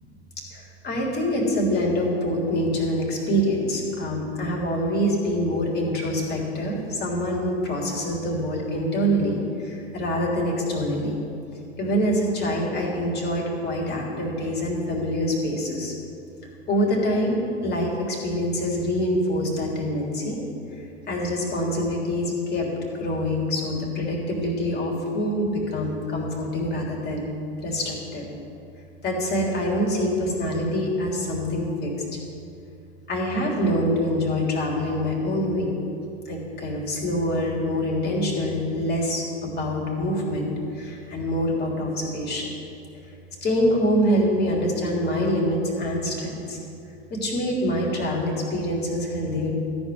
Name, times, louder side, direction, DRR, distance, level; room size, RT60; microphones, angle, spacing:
voice 1, 0.5-11.1 11.8-15.9 16.7-20.4 21.1-22.7 23.0-27.3 27.6-28.3 29.0-31.9 33.1-35.7 36.3-42.5 43.4-46.6 47.1-49.5, equal, 30° left, -2 dB, 3.4 m, -25 dB
14.0 x 5.3 x 9.4 m, 2.6 s
figure-of-eight pair, 90°, 33 cm